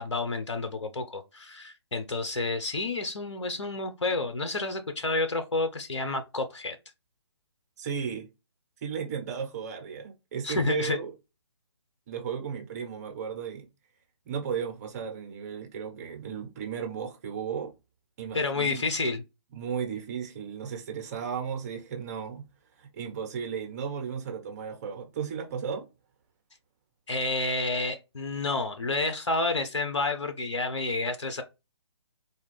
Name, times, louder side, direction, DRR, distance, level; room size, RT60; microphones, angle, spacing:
voice 1, 0.0-6.8 10.4-11.0 18.3-19.2 27.1-31.4, left 3 dB, 80° left, 0.7 m, -29 dB
voice 2, 7.8-8.3 8.8-11.1 12.1-13.7 14.2-17.7 18.2-18.8 19.5-22.5 22.8-25.9, right 7 dB, 35° right, 1.0 m, -35 dB
4.2 x 2.2 x 3.3 m
figure-of-eight pair, 140°, 15 cm